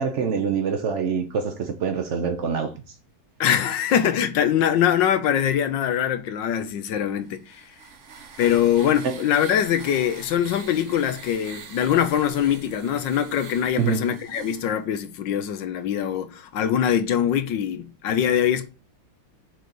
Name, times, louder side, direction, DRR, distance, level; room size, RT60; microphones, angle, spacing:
voice 1, 0.0-2.9 9.0-9.2 13.8-14.1, right 6 dB, 70° right, 0.7 m, -25 dB
voice 2, 3.4-7.7 8.4-18.7, left 9 dB, 70° left, 1.4 m, -23 dB
sound 1, 7.2-14.7, right 5 dB, 50° right, 1.0 m, -43 dB
6.4 x 4.0 x 6.1 m
omnidirectional pair, 2.2 m